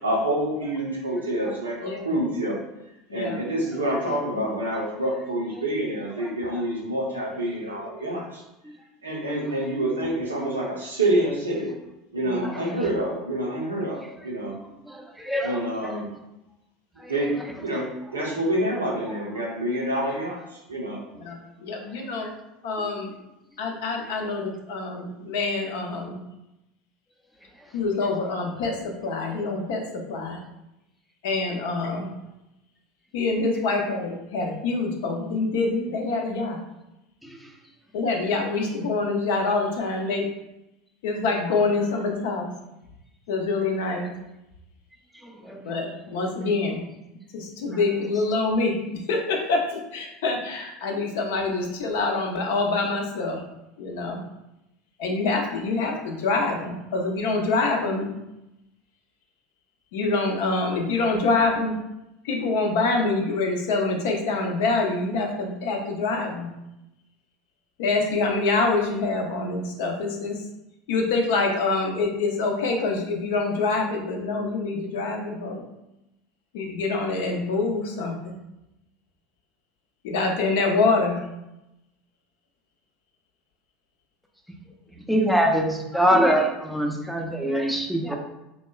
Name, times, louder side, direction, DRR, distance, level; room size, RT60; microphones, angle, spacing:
voice 1, 0.0-2.6 3.1-8.4 9.0-11.7 12.1-14.6 15.4-16.1 17.1-17.3 17.6-21.0, right 1 dB, 85° right, -3 dB, 0.6 m, -27 dB
voice 2, 3.1-3.4 12.2-12.9 21.2-22.3 22.6-23.1 23.6-26.2 27.7-30.4 31.2-32.1 33.1-36.6 37.9-40.3 41.0-42.5 43.3-44.1 45.6-46.8 47.3-53.4 53.8-54.2 55.0-58.1 59.9-61.7 62.2-66.5 67.8-70.4 70.9-75.6 76.5-78.4 80.0-81.2, left 3 dB, 65° left, 2 dB, 0.4 m, -26 dB
voice 3, 14.9-15.9 17.0-17.1 37.2-37.4 45.2-45.7 85.1-88.2, equal, ahead, 1 dB, 0.4 m, -24 dB
2.8 x 2.1 x 2.3 m, 0.91 s
figure-of-eight pair, 75°, 0 cm